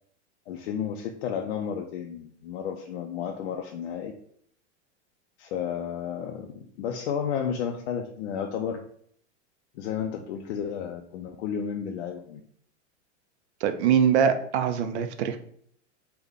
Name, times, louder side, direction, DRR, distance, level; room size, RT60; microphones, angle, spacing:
voice 1, 0.5-4.1 5.4-8.8 9.7-12.4, left 7 dB, 65° left, 2 dB, 0.5 m, -32 dB
voice 2, 13.6-15.4, right 8 dB, 65° right, 9 dB, 0.5 m, -23 dB
3.4 x 2.2 x 3.6 m, 0.63 s
supercardioid pair, 160°, 36 cm